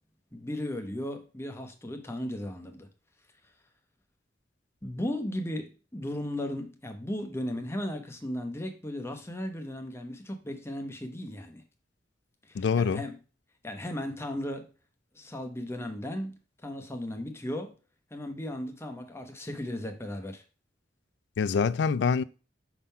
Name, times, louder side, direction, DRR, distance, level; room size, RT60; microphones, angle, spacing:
voice 1, 0.3-2.9 4.8-11.6 12.4-13.2 13.6-14.7 15.1-17.8 18.1-20.4, left 1 dB, 15° left, 0.9 m, -36 dB
voice 2, 12.5-13.0 21.4-22.2, left 5 dB, 70° left, 0.3 m, -25 dB
5.9 x 3.7 x 5.5 m
head